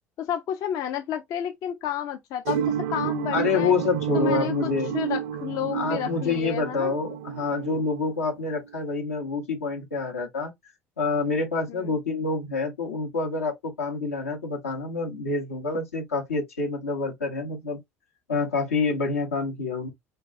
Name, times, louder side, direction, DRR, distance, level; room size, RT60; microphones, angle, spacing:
voice 1, 0.2-3.7 4.1-6.9 11.7-11.9, left 10 dB, 50° left, 0.4 m, -31 dB
sound 1, 2.4-8.7, right 9 dB, 65° right, 0.3 m, -30 dB
voice 2, 3.3-5.0 5.7-10.5 11.0-17.8 18.3-19.9, left 4 dB, 85° left, 0.8 m, -27 dB
3.3 x 2.2 x 2.4 m
figure-of-eight pair, 60°, 8 cm